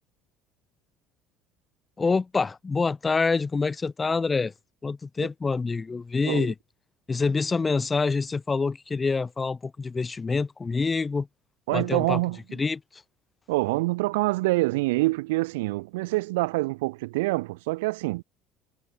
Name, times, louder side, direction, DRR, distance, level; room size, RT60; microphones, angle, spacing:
voice 1, 2.0-4.5 4.8-6.5 7.1-11.3 11.7-12.2 12.6-12.8, left 4 dB, 25° left, 0.3 m, -26 dB
voice 2, 11.7-12.6 13.5-18.2, right 21 dB, 75° right, 0.4 m, -26 dB
hypercardioid pair, 65°, 0 cm